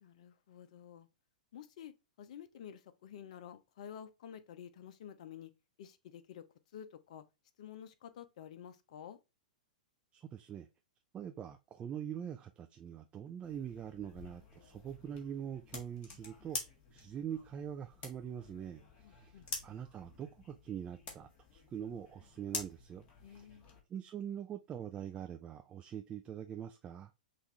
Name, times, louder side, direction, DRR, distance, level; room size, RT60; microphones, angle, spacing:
voice 1, 0.0-1.1 1.5-5.5 5.8-6.4 6.7-7.2 7.6-9.2 19.0-19.5 23.2-23.7, left 9 dB, 55° left, 0.7 m, -50 dB
voice 2, 10.1-10.7 11.1-16.6 16.9-23.6 23.9-27.1, right 9 dB, 25° right, 0.4 m, -44 dB
sound 1, 13.4-23.8, left 4 dB, 35° left, 1.6 m, -48 dB
5.7 x 2.6 x 3.1 m
figure-of-eight pair, 105°, 4 cm